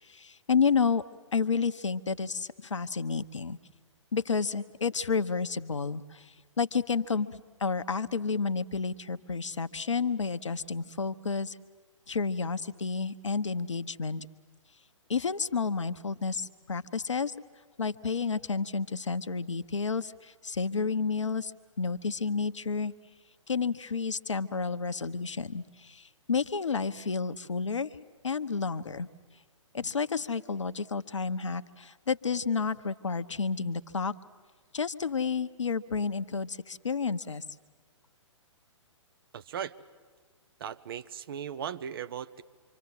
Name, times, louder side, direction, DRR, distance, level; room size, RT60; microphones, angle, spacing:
voice 1, 0.0-1.0 1.3-3.6 4.1-11.6 12.1-14.3 15.1-17.3 17.8-21.5 21.8-22.9 23.5-28.0 28.2-29.1 29.7-34.1 34.7-37.4, left 5 dB, 70° left, 12 dB, 1.0 m, -30 dB
voice 2, 39.3-39.8 40.6-42.4, right 8 dB, 45° right, 12 dB, 0.9 m, -37 dB
26.5 x 25.0 x 7.9 m, 1.5 s
figure-of-eight pair, 120°, 16 cm